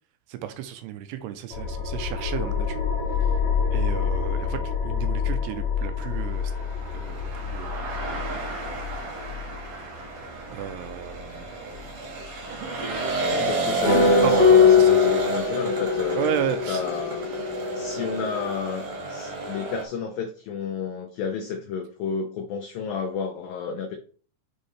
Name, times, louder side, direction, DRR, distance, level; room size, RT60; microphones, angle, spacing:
voice 1, 0.3-2.8 3.7-6.5 6.9-7.8 10.5-11.6 13.8-14.9 16.2-16.8, right 10 dB, 80° right, 2.5 m, -33 dB
sound 1, 1.5-12.6, left 6 dB, 75° left, 1.7 m, -28 dB
sound 2, 6.4-19.9, right 3 dB, 60° right, 2.8 m, -31 dB
voice 2, 13.3-17.2 17.8-24.0, left 6 dB, 90° left, 2.0 m, -31 dB
sound 3, 13.8-18.5, left 5 dB, 35° left, 0.9 m, -21 dB
7.2 x 5.3 x 3.3 m
omnidirectional pair, 5.1 m